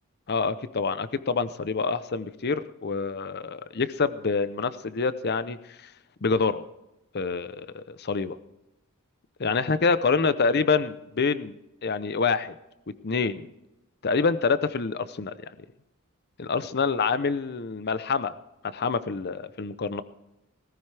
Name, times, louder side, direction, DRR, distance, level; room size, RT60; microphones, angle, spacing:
voice 1, 0.3-5.9 6.2-6.6 7.1-8.4 9.4-11.5 11.8-12.5 13.0-13.5 14.0-15.5 16.4-18.3 18.7-20.0, left 4 dB, 50° left, 14 dB, 0.7 m, -26 dB
17.5 x 15.5 x 3.4 m, 0.93 s
head